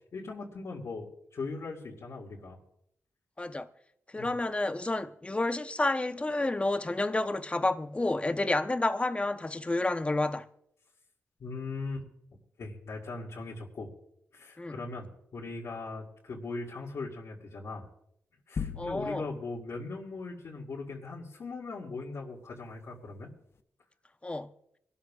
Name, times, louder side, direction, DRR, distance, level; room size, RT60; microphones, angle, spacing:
voice 1, 0.1-2.6 4.2-4.3 11.4-12.0 12.6-13.9 14.3-17.9 18.5-23.3, left 3 dB, 70° left, 2.1 m, -39 dB
voice 2, 3.4-3.7 4.1-10.5 14.6-14.8 18.8-19.2 24.2-24.5, left 2 dB, 20° left, 0.8 m, -30 dB
sound 1, 18.6-19.5, left 6 dB, 50° left, 0.7 m, -37 dB
26.0 x 13.0 x 2.4 m
cardioid pair, 80°, 5 cm